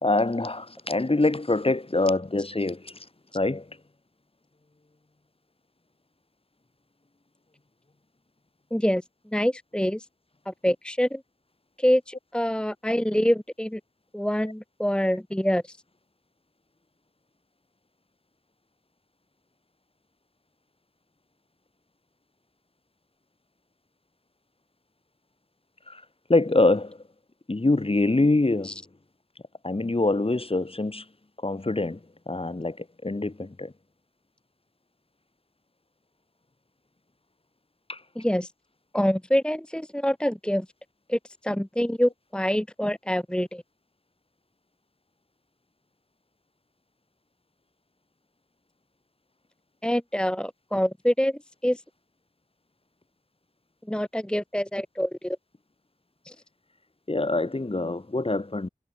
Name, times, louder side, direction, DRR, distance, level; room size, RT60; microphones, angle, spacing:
voice 1, 0.0-3.0 3.3-3.7 25.9-26.0 26.3-27.0 27.5-28.8 29.6-31.0 31.4-32.0 32.3-33.7 37.9-38.0 57.1-58.7, left 2 dB, 40° left, 2.6 m, -25 dB
voice 2, 8.7-9.0 9.3-10.0 10.5-11.2 11.8-13.8 14.1-15.8 28.6-28.7 38.2-38.5 38.9-40.7 41.1-43.6 49.8-51.8 53.9-55.4 56.3-56.4, equal, 5° left, 1.0 m, -26 dB
wide cardioid pair, 65°, 15 cm